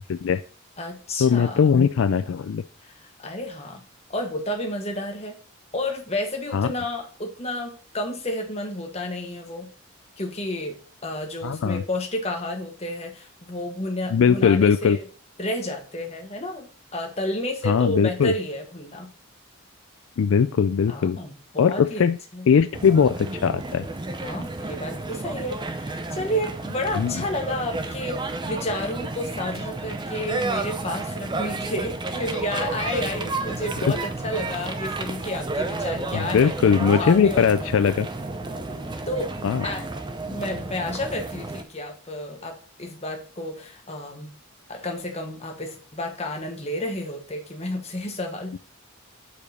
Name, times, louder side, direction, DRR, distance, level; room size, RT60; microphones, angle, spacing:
voice 1, 0.1-0.4 1.2-2.6 6.5-6.7 11.4-11.8 14.1-15.0 17.6-18.3 20.2-21.2 21.6-22.2 22.5-23.8 27.0-27.2 36.1-38.1 39.4-39.6, left 6 dB, 65° left, 10 dB, 0.3 m, -20 dB
voice 2, 0.8-1.6 3.0-3.8 4.1-5.4 5.7-9.7 10.2-15.0 15.4-19.1 20.9-22.1 22.3-22.5 24.2-36.5 36.9-37.7 38.6-39.3 39.6-39.9 40.3-44.3 44.7-48.6, left 1 dB, 30° left, 2 dB, 1.3 m, -31 dB
sound 1, 22.7-41.6, right 2 dB, 20° right, 0.5 m, -31 dB
7.0 x 5.0 x 4.1 m, 0.38 s
head